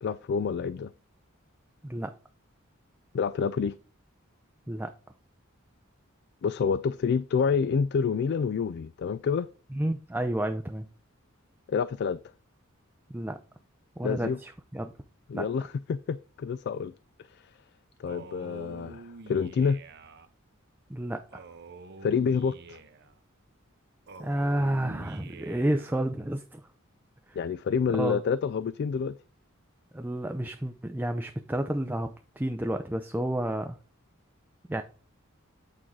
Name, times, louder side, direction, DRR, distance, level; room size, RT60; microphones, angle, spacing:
voice 1, 0.0-0.9 3.1-3.7 6.4-9.5 11.7-12.2 14.0-14.4 15.3-16.9 17.3-17.4 18.0-19.8 22.0-22.8 27.4-29.2, left 6 dB, 55° left, 0.3 m, -28 dB
voice 2, 9.7-10.9 13.1-13.4 14.0-14.9 15.3-15.5 20.9-21.4 24.2-26.6 27.3-27.4 27.9-28.2 29.9-33.8 34.7-34.8, right 1 dB, 10° right, 0.5 m, -30 dB
Male speech man speaking, 18.1-20.3 21.3-23.1 24.1-26.1, right 3 dB, 55° right, 0.7 m, -47 dB
8.5 x 4.6 x 3.7 m
head